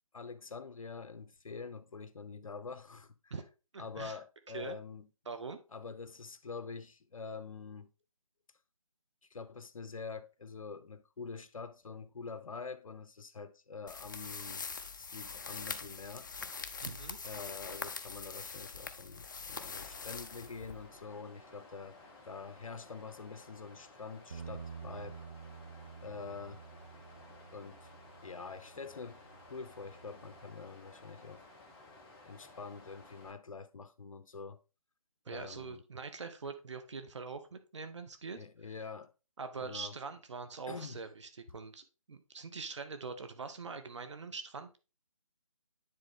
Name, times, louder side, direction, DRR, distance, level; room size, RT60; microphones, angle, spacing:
voice 1, 0.1-3.3 3.8-5.1 5.7-7.9 9.3-14.6 15.0-16.3 17.2-22.0 22.2-25.2 26.0-26.6 27.5-27.9 28.2-31.5 32.2-34.6 35.3-35.8 38.4-39.1 39.6-39.9 40.7-41.0, left 5 dB, 65° left, 0.8 m, -46 dB
voice 2, 3.7-4.2 4.5-4.8 5.3-5.6 16.8-17.2 35.2-38.4 39.4-44.8, right 4 dB, 55° right, 1.2 m, -43 dB
sound 1, 13.9-21.0, left 5 dB, 35° left, 0.5 m, -43 dB
Water, 19.6-33.3, left 2 dB, 10° left, 0.8 m, -56 dB
Bass guitar, 24.3-30.6, right 6 dB, 25° right, 0.4 m, -50 dB
9.7 x 3.7 x 3.6 m
figure-of-eight pair, 160°, 18 cm